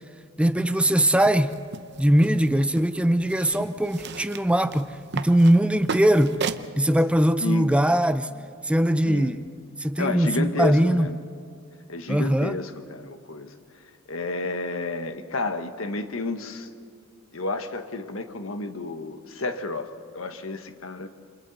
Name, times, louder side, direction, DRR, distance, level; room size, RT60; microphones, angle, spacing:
voice 1, 0.4-1.5 2.0-4.9 5.1-6.4 6.8-8.3 8.6-9.4 9.8-11.1 12.1-12.6, right 1 dB, 5° right, 0.5 m, -21 dB
sound 1, 1.2-6.7, right 5 dB, 55° right, 0.8 m, -36 dB
voice 2, 7.4-7.7 9.0-9.3 10.0-11.1 11.9-13.5 14.1-16.7 17.3-21.1, left 2 dB, 80° left, 1.4 m, -31 dB
29.0 x 26.5 x 4.2 m
head